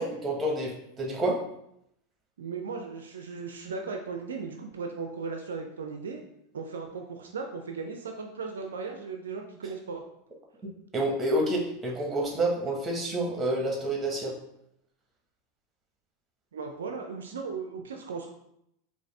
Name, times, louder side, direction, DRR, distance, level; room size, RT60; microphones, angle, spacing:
voice 1, 0.0-1.4 10.9-14.3, right 1 dB, 20° right, -1 dB, 1.3 m, -28 dB
voice 2, 2.4-6.2 6.5-10.0 16.5-18.3, right 4 dB, 75° right, 4 dB, 0.4 m, -37 dB
4.6 x 2.6 x 3.4 m, 0.77 s
figure-of-eight pair, 85°, 0 cm